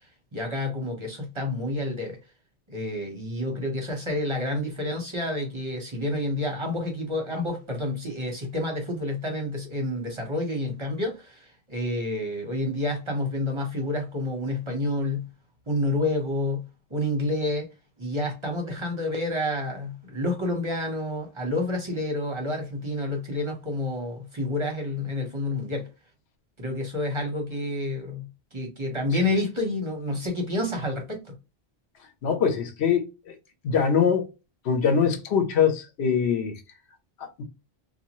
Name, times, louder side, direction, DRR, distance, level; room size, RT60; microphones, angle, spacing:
voice 1, 0.3-2.2 2.7-15.3 15.7-16.6 16.9-17.7 18.0-25.9 26.6-28.3 28.5-31.3, left 1 dB, 30° right, 0.9 m, -29 dB
voice 2, 32.2-33.3 33.6-34.3 34.6-36.5 37.2-37.4, left 7 dB, 90° left, 1.0 m, -23 dB
2.7 x 2.3 x 2.9 m
omnidirectional pair, 1.1 m